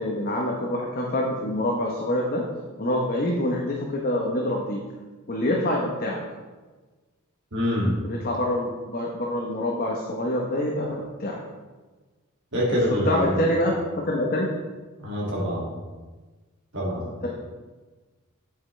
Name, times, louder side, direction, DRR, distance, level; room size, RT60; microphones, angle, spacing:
voice 1, 0.0-2.4 2.8-4.8 5.3-6.2 8.0-11.4 13.1-14.5 17.2-17.3, left 1 dB, 40° left, -2 dB, 0.9 m, -26 dB
voice 2, 7.5-8.0 12.5-13.4 15.0-15.7 16.7-17.1, equal, 60° right, -5 dB, 2.2 m, -25 dB
8.1 x 7.6 x 3.2 m, 1.3 s
head